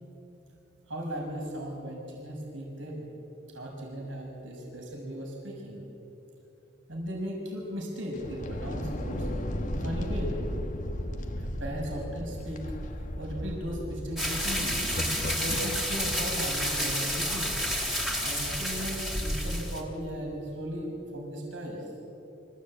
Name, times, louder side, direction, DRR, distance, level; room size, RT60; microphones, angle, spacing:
voice 1, 0.9-3.1 3.5-5.8 6.9-9.3 9.7-10.4 11.4-12.8 13.2-14.9 15.4-17.6 18.2-21.9, equal, 75° right, -1 dB, 6.4 m, -36 dB
sound 1, 8.1-15.7, left 1 dB, 40° left, 1.6 m, -35 dB
sound 2, 14.2-19.8, equal, ahead, 3.2 m, -30 dB
26.5 x 16.0 x 8.8 m, 2.9 s
head